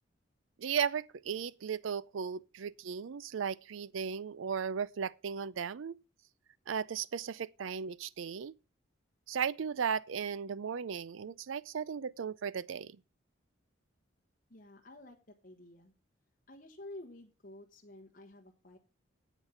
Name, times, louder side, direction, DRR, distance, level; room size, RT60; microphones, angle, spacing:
voice 1, 0.6-5.9 6.7-8.5 9.3-13.0, right 7 dB, 85° right, 0.4 m, -36 dB
voice 2, 14.5-15.9 16.5-18.8, left 1 dB, 45° left, 1.2 m, -51 dB
8.9 x 8.3 x 5.6 m
head